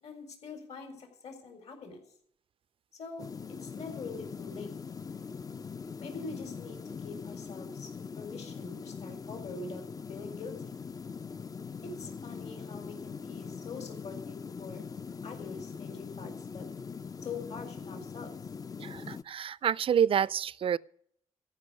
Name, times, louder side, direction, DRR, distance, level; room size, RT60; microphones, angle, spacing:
voice 1, 0.0-2.0 3.0-3.3 3.6-4.7 6.0-7.9 8.2-9.8 10.1-10.7 11.8-14.8 15.2-16.7 17.2-18.3, left 4 dB, 65° left, 4.3 m, -44 dB
sound 1, 3.2-19.2, left 5 dB, 30° left, 0.5 m, -42 dB
voice 2, 18.8-20.8, right 8 dB, 45° right, 0.4 m, -28 dB
14.0 x 6.0 x 9.6 m
cardioid pair, 110°, 12 cm